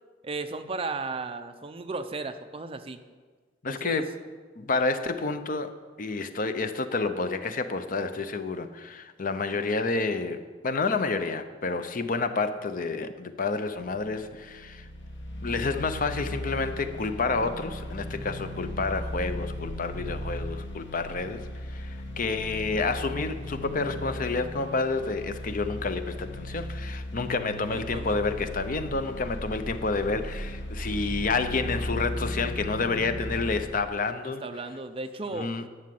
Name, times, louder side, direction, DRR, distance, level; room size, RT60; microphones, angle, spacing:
voice 1, 0.2-3.0 3.7-4.1 27.5-28.3 34.2-35.6, right 3 dB, 30° right, 8 dB, 0.6 m, -35 dB
voice 2, 3.6-4.1 4.6-5.7 6.0-14.9 15.4-34.4 35.3-35.7, left 3 dB, 50° left, 10 dB, 0.7 m, -29 dB
sound 1, 13.8-33.6, equal, 80° left, 1.5 m, -36 dB
11.0 x 6.4 x 7.7 m, 1.5 s
head